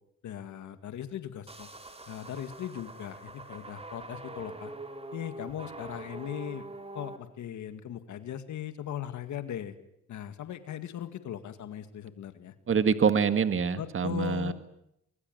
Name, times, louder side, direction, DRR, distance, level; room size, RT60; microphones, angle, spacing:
voice 1, 0.2-1.7 2.1-4.7 5.1-6.7 6.9-9.8 10.1-12.5 13.8-14.5, left 10 dB, 70° left, 9 dB, 2.1 m, -38 dB
sound 1, 1.5-7.2, right 2 dB, 20° right, 3.6 m, -44 dB
voice 2, 12.7-14.5, right 6 dB, 45° right, 10 dB, 1.9 m, -25 dB
24.0 x 22.5 x 9.5 m, 0.81 s
cardioid pair, 90°, 30 cm